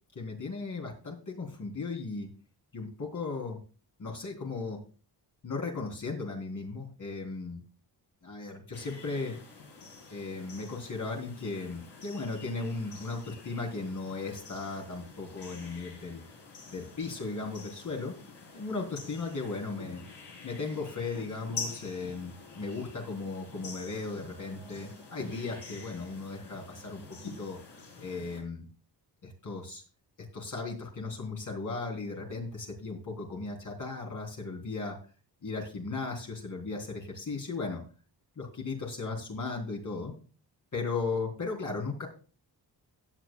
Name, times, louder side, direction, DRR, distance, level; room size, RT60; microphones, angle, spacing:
voice 1, 0.1-2.3 2.7-3.6 4.0-4.8 5.4-7.6 8.2-9.3 10.1-16.2 16.7-18.1 18.5-20.0 20.4-27.6 28.0-28.6 29.2-29.8 30.3-35.0 35.4-37.8 38.4-40.1 40.7-42.1, left 3 dB, 50° left, 0 dB, 3.8 m, -36 dB
sound 1, 8.7-28.4, left 4 dB, 80° left, 4.9 m, -47 dB
17.0 x 9.5 x 2.4 m, 0.35 s
wide cardioid pair, 110°, 41 cm